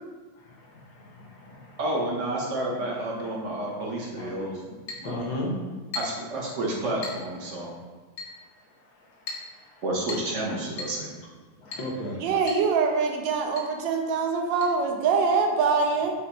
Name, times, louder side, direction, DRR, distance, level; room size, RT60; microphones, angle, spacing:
voice 1, 0.4-1.8 4.2-4.3 4.6-4.7 5.0-5.7 8.4-9.8 11.6-12.2, left 1 dB, 65° left, -2 dB, 1.3 m, -37 dB
voice 2, 1.8-4.6 4.9-5.2 5.9-7.7 9.8-11.1 15.6-15.7, right 1 dB, 60° right, -3 dB, 0.8 m, -30 dB
Chink clink, 4.9-5.1 5.9-6.3 7.0-7.3 8.2-8.4 9.3-9.5 10.1-10.4 10.8-11.0 11.7-11.9 12.5-12.7 12.9-13.0 13.6-13.7 14.6-14.7, left 3 dB, 50° left, 0.9 m, -36 dB
voice 3, 12.2-16.1, right 5 dB, 80° right, 2 dB, 1.3 m, -24 dB
5.3 x 2.0 x 4.3 m, 1.3 s
omnidirectional pair, 2.0 m